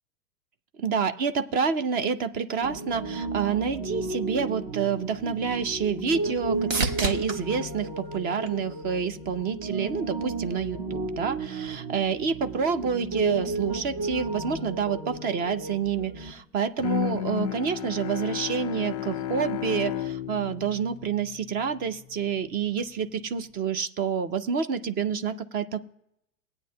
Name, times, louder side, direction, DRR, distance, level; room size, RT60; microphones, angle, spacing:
voice 1, 0.8-25.9, right 6 dB, 20° right, 10 dB, 0.6 m, -28 dB
Piano, 2.6-16.3, right 3 dB, 45° right, 1.6 m, -33 dB
sound 1, 5.0-9.2 9.7-10.3 18.1-18.2, right 3 dB, 65° right, 1.5 m, -34 dB
Bowed string instrument, 16.8-21.9, left 10 dB, 30° left, 0.4 m, -32 dB
19.5 x 8.7 x 2.2 m, 0.80 s
figure-of-eight pair, 105°, 42 cm